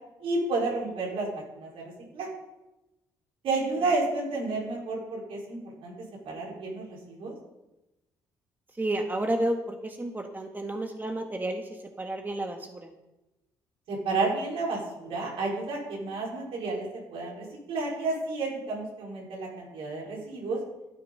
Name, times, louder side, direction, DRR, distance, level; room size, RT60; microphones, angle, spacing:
voice 1, 0.2-1.8 2.1-2.3 3.4-5.9 6.3-7.3 13.9-20.6, right 3 dB, 70° right, -3 dB, 5.2 m, -31 dB
voice 2, 8.8-12.9, right 1 dB, 20° right, 4 dB, 1.7 m, -31 dB
13.5 x 10.5 x 4.2 m, 0.99 s
hypercardioid pair, 55°, 10 cm